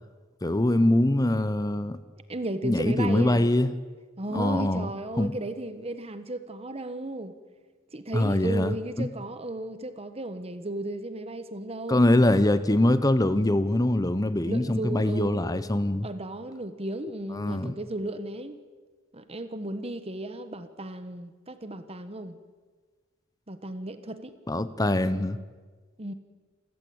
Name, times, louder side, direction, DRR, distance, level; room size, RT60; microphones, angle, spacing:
voice 1, 0.4-2.0 2.6-3.7 4.3-4.9 5.2-5.3 8.1-9.1 11.9-16.1 17.4-17.7 24.5-25.4, left 1 dB, 20° left, 14 dB, 0.8 m, -23 dB
voice 2, 2.3-3.5 4.2-7.4 7.9-12.0 14.4-15.5 16.0-18.6 19.1-22.4 23.5-24.3 26.0-26.1, right 1 dB, 30° right, 10 dB, 1.3 m, -35 dB
28.5 x 14.5 x 8.8 m, 1.4 s
head